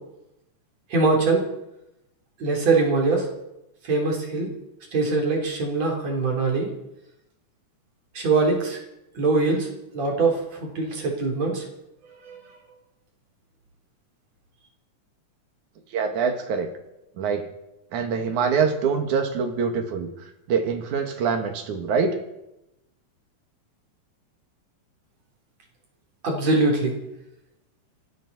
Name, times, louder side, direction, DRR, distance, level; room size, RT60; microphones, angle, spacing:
voice 1, 0.9-1.4 2.4-3.3 3.8-4.5 4.9-6.7 8.1-8.8 9.1-9.7 9.9-11.6 12.2-12.4 26.2-26.9, right 3 dB, 60° right, 0 dB, 4.8 m, -22 dB
voice 2, 15.9-16.7 17.2-17.5 17.9-20.1 20.5-22.2, right 6 dB, 90° right, 5 dB, 3.2 m, -24 dB
28.0 x 11.5 x 4.3 m, 0.89 s
omnidirectional pair, 3.4 m